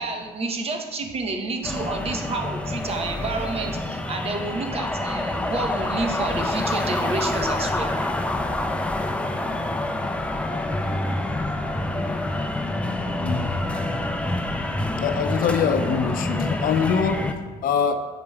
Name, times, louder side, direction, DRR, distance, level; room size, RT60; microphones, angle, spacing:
voice 1, 0.0-7.9, right 3 dB, 35° right, 4 dB, 0.8 m, -29 dB
sound 1, 1.6-17.3, left 1 dB, 5° left, 0.4 m, -27 dB
voice 2, 13.2-13.5 15.0-17.9, left 6 dB, 55° left, 7 dB, 0.5 m, -24 dB
8.4 x 5.2 x 2.3 m, 1.4 s
cardioid pair, 110°, 17 cm